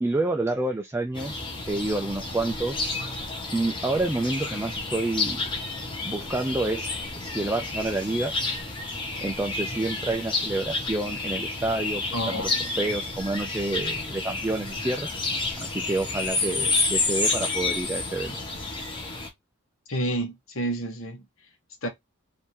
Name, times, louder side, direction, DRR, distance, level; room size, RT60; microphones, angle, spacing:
voice 1, 0.0-2.9 3.5-5.4 6.0-6.9 7.2-8.3 9.2-12.5 12.8-15.1 15.6-18.4, right 2 dB, 10° right, 0.3 m, -28 dB
sound 1, 1.1-19.3, left 3 dB, 20° left, 1.0 m, -30 dB
voice 2, 12.1-12.6 19.9-21.3 21.8-21.9, right 1 dB, 65° left, 1.2 m, -29 dB
3.7 x 2.6 x 4.4 m
head